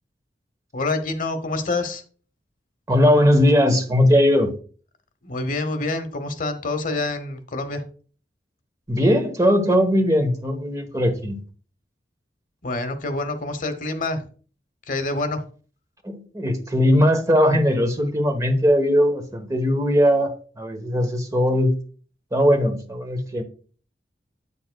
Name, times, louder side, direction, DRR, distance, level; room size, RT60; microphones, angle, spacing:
voice 1, 0.7-2.0 5.2-7.8 12.6-14.3 14.9-15.5, left 2 dB, 50° left, 1.0 m, -27 dB
voice 2, 2.9-4.5 8.9-11.4 16.0-21.7 22.3-23.4, equal, 20° right, 1.1 m, -19 dB
8.9 x 6.9 x 2.2 m
head